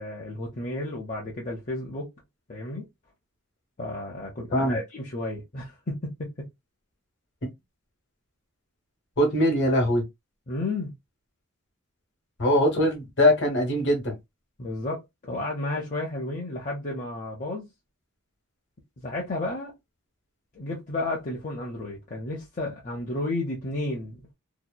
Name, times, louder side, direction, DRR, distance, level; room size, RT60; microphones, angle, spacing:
voice 1, 0.0-2.1 2.5-2.8 3.8-6.3 10.5-10.9 14.6-17.7 19.0-19.7 20.5-24.3, left 2 dB, 35° left, 0.6 m, -32 dB
voice 2, 9.2-10.0 12.4-14.2, left 1 dB, 55° left, 1.1 m, -22 dB
2.7 x 2.0 x 2.2 m
head